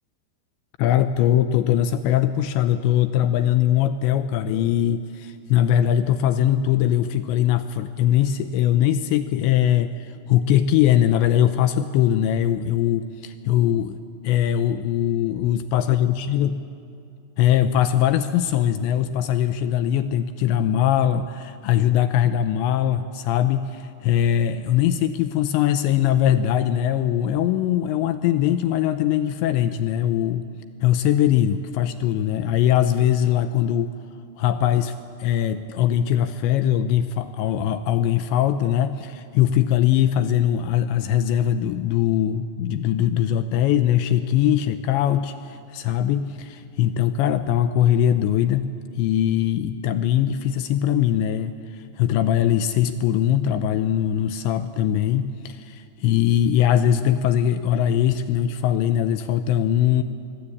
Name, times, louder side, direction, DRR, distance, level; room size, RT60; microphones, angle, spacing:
voice 1, 0.8-14.0 14.2-16.6 17.4-30.4 30.8-33.9 34.4-34.9 35.2-60.0, left 10 dB, 80° left, 10 dB, 2.6 m, -21 dB
25.5 x 22.0 x 8.5 m, 2.5 s
omnidirectional pair, 5.9 m